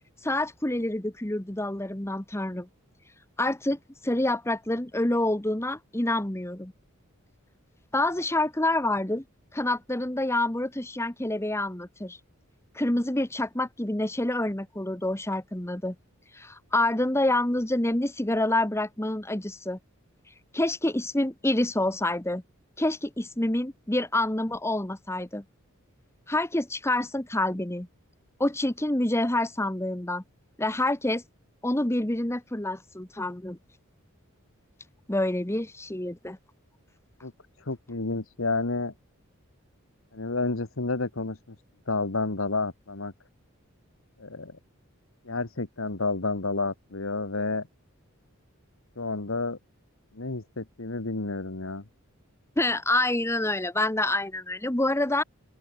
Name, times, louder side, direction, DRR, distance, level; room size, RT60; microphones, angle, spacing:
voice 1, 0.2-2.7 3.4-6.7 7.9-9.2 9.5-12.2 12.7-15.9 16.3-19.8 20.5-22.4 22.8-25.4 26.3-27.9 28.4-30.2 30.6-31.2 31.6-33.6 35.1-36.4 52.6-55.2, left 1 dB, 10° left, 1.2 m, -27 dB
voice 2, 37.7-38.9 40.1-41.4 41.9-43.1 44.2-44.6 45.2-47.7 49.0-49.6 50.1-51.8, left 3 dB, 70° left, 1.5 m, -30 dB
open air
head